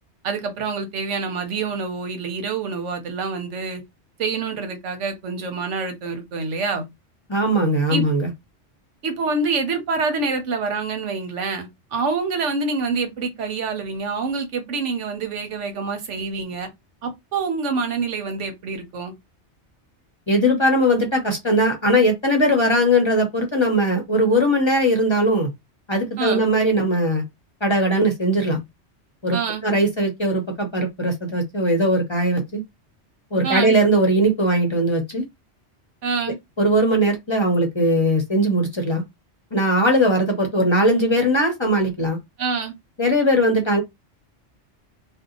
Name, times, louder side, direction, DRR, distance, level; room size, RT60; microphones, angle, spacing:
voice 1, 0.2-3.8 4.2-6.9 7.9-8.1 9.0-16.7 17.0-19.1 26.2-26.5 29.3-29.6 33.4-33.7 36.0-36.4 42.4-42.7, right 4 dB, 85° right, 1.2 m, -26 dB
voice 2, 7.3-8.3 20.3-25.5 25.9-27.2 27.6-28.6 29.2-29.4 29.6-32.6 33.3-35.2 36.6-39.0 39.5-42.2 43.0-43.8, equal, 30° left, 0.7 m, -19 dB
2.8 x 2.2 x 3.7 m
omnidirectional pair, 1.2 m